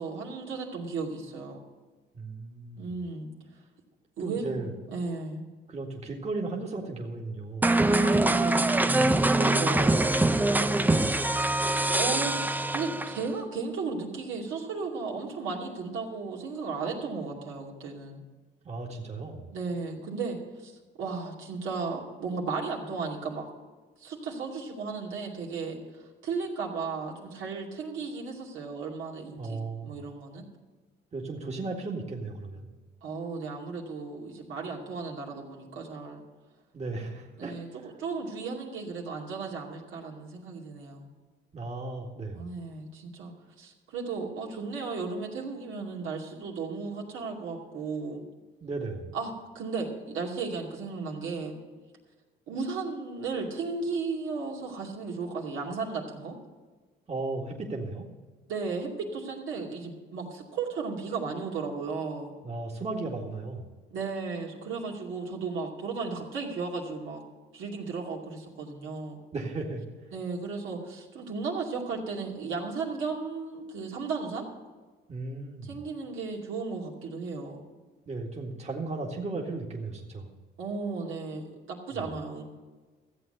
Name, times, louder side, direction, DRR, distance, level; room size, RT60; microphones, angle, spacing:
voice 1, 0.0-1.6 2.8-3.3 4.2-5.4 7.9-8.6 11.9-18.2 19.5-20.7 21.0-23.5 24.0-25.8 26.2-30.4 33.0-36.2 37.4-41.1 42.3-48.2 49.1-51.6 52.5-56.3 58.5-62.3 63.9-67.2 67.5-69.2 70.1-74.5 75.6-77.6 80.6-82.4, right 4 dB, 80° right, -2 dB, 2.6 m, -35 dB
voice 2, 2.1-3.0 4.2-4.7 5.7-7.7 8.9-11.2 18.6-19.5 29.4-30.0 31.1-32.7 36.7-37.6 41.5-42.5 48.6-49.1 57.1-58.1 62.4-63.7 69.3-69.8 75.1-75.8 78.1-80.3 81.9-82.0, right 3 dB, 35° right, -1 dB, 1.9 m, -35 dB
sound 1, 7.6-13.3, right 2 dB, 10° right, 0.5 m, -24 dB
14.5 x 8.0 x 6.7 m, 1.3 s
cardioid pair, 90°, 20 cm